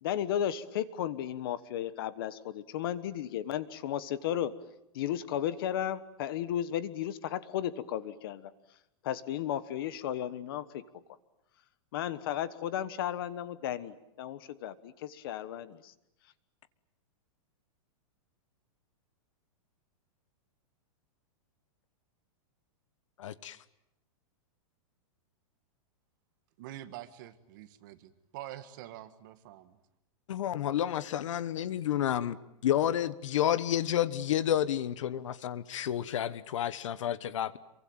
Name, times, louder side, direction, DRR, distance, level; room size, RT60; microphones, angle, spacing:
voice 1, 0.0-4.5 4.9-8.5 9.0-10.8 11.9-15.9, left 11 dB, 40° left, 15 dB, 1.3 m, -34 dB
voice 2, 23.2-23.6 30.3-32.4 32.6-37.6, left 11 dB, 60° left, 16 dB, 1.3 m, -30 dB
voice 3, 26.6-29.8, right 13 dB, 35° right, 11 dB, 1.6 m, -46 dB
27.5 x 24.0 x 8.8 m, 0.83 s
supercardioid pair, 180°, 18 cm